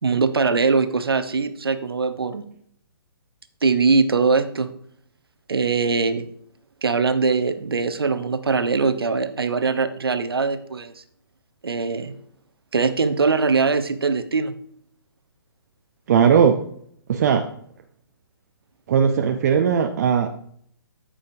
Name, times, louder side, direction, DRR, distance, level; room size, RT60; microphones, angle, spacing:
voice 1, 0.0-2.5 3.6-4.7 5.5-6.3 6.8-11.0 11.6-12.1 12.7-14.5, right 4 dB, 70° right, 9 dB, 0.8 m, -21 dB
voice 2, 16.1-16.6 17.1-17.5 18.9-20.3, right 7 dB, 40° right, 6 dB, 0.6 m, -18 dB
13.0 x 5.0 x 2.6 m, 0.64 s
figure-of-eight pair, 125°, 13 cm